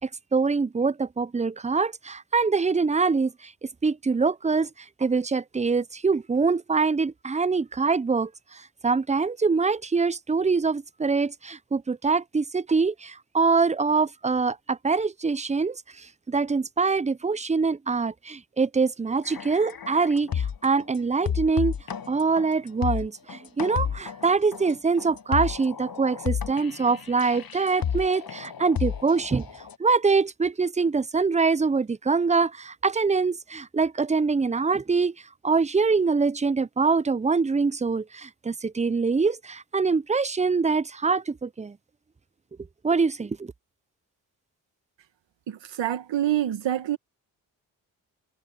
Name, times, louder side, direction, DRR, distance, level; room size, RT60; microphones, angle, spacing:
voice 1, 0.0-4.7 5.0-21.7 22.1-29.5 29.8-35.1 35.4-41.8 42.8-43.5, right 4 dB, 15° right, 0.6 m, -24 dB
sound 1, 19.2-20.8 21.2-29.7, left 8 dB, 50° left, 1.5 m, -31 dB
voice 2, 45.5-47.0, right 12 dB, 70° right, 2.1 m, -26 dB
hypercardioid pair, 40°, 46 cm